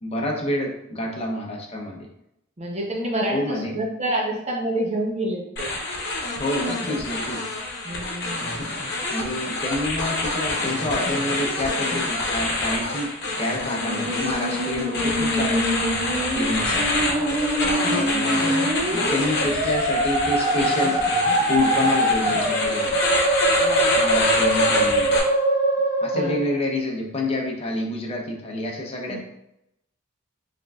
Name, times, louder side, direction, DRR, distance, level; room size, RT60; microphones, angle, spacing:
voice 1, 0.0-2.1 3.3-3.8 6.4-7.5 8.5-8.8 9.1-15.9 16.3-17.1 17.8-18.6 18.9-21.0 21.5-23.0 24.0-25.2 26.0-29.2, left 1 dB, 30° left, 0 dB, 0.7 m, -28 dB
voice 2, 2.6-5.7 6.6-7.2 7.8-8.6 16.7-16.8 17.1-18.5 23.6-23.9 26.1-26.6 29.1-29.2, right 1 dB, 35° right, -1 dB, 0.8 m, -29 dB
sound 1, 5.6-25.2, left 2 dB, 55° left, 0.9 m, -27 dB
Musical instrument, 13.5-26.5, right 1 dB, 55° right, 1.4 m, -24 dB
4.4 x 3.5 x 2.4 m, 0.84 s
head